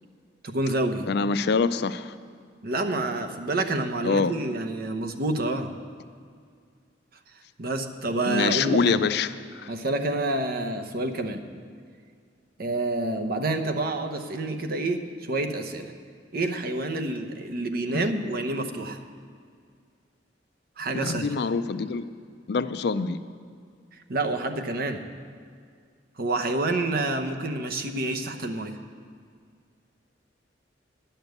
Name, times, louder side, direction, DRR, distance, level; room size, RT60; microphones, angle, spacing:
voice 1, 0.4-1.1 2.6-5.7 7.6-9.0 9.7-11.4 12.6-15.9 16.3-19.0 20.8-21.3 24.1-25.0 26.2-28.8, right 2 dB, 55° right, 5 dB, 0.9 m, -28 dB
voice 2, 1.1-2.1 4.0-4.3 8.3-9.7 17.9-18.0 20.9-22.0 22.5-23.2, left 4 dB, 65° left, 12 dB, 0.4 m, -25 dB
10.5 x 6.8 x 9.3 m, 2.1 s
head